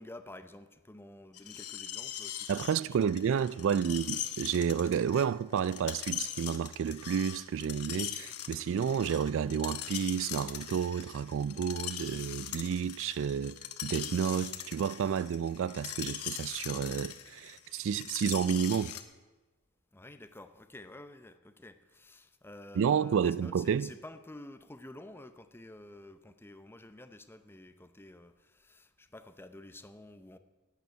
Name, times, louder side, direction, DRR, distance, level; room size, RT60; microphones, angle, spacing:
voice 1, 0.0-4.0 19.9-30.4, left 1 dB, 10° left, 0.6 m, -50 dB
Screech, 1.3-19.0, left 10 dB, 85° left, 1.1 m, -41 dB
voice 2, 2.5-19.0 22.8-23.9, right 7 dB, 60° right, 0.3 m, -31 dB
11.0 x 8.3 x 9.0 m
head